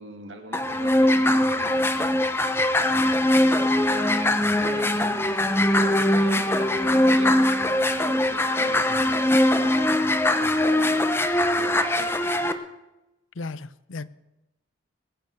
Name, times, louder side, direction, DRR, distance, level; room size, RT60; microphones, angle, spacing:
voice 1, 0.0-2.2 2.8-5.5 6.0-7.4 7.6-12.5, right 1 dB, 70° right, 2.6 m, -41 dB
sound 1, 0.5-12.5, left 1 dB, 10° left, 0.8 m, -21 dB
voice 2, 13.4-14.1, left 3 dB, 85° left, 0.7 m, -35 dB
21.0 x 9.2 x 6.6 m
head